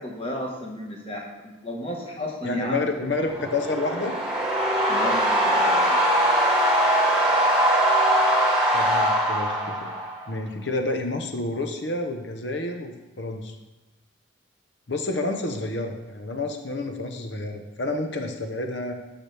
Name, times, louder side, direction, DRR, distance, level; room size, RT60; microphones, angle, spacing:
voice 1, 0.0-2.8 4.9-6.0, equal, 30° left, -1 dB, 1.5 m, -33 dB
voice 2, 2.4-4.1 8.7-9.9 10.3-13.5 14.9-18.9, left 2 dB, 60° left, 4 dB, 0.9 m, -29 dB
sound 1, 3.2-10.3, right 1 dB, 5° right, 1.6 m, -21 dB
13.0 x 5.9 x 3.4 m, 1.1 s
head